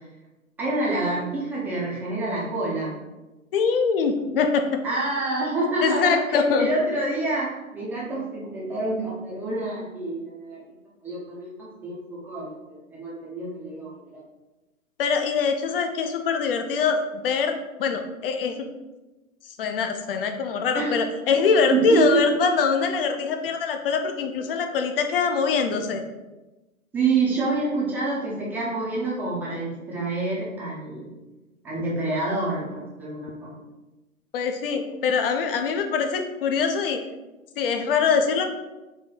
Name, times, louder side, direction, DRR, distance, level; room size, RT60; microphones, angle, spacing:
voice 1, 0.6-3.0 4.8-10.6 11.0-14.1 20.7-21.0 21.7-22.3 26.9-31.1 31.6-33.6, right 3 dB, 5° right, -6 dB, 0.5 m, -27 dB
voice 2, 3.5-4.6 5.6-6.7 15.0-18.7 19.6-26.0 34.3-37.0 37.6-38.5, left 5 dB, 40° left, 6 dB, 0.5 m, -23 dB
4.2 x 2.7 x 3.8 m, 1.1 s
figure-of-eight pair, 120°, 42 cm